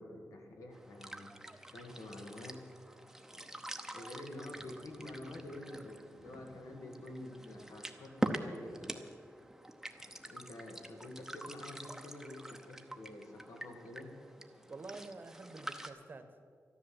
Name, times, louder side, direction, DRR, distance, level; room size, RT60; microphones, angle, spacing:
voice 1, 0.0-1.4 1.7-2.7 3.3-3.5 3.9-8.9 10.0-14.1, left 1 dB, 85° left, 2 dB, 2.1 m, -48 dB
sound 1, 0.7-15.9, right 1 dB, 5° right, 0.8 m, -45 dB
voice 2, 14.7-16.5, right 3 dB, 40° right, 8 dB, 1.1 m, -48 dB
13.0 x 11.0 x 7.7 m, 2.3 s
wide cardioid pair, 140°, 5 cm